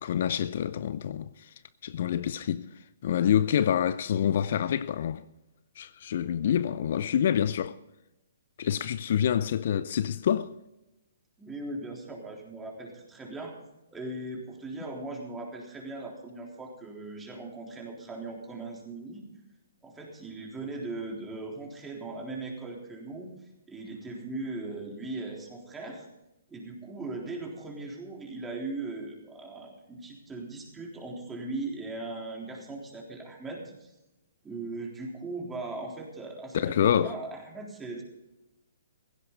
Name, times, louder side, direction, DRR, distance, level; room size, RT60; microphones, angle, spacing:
voice 1, 0.0-1.5 1.8-2.7 3.0-5.2 5.8-7.8 8.6-10.5 36.5-37.1, left 9 dB, 55° left, 0.5 m, -27 dB
voice 2, 11.4-13.5 13.9-19.2 19.8-23.3 23.7-26.1 26.5-33.9 34.4-38.0, right 2 dB, 10° right, 3.6 m, -39 dB
16.5 x 16.0 x 4.1 m
figure-of-eight pair, 130°, 0 cm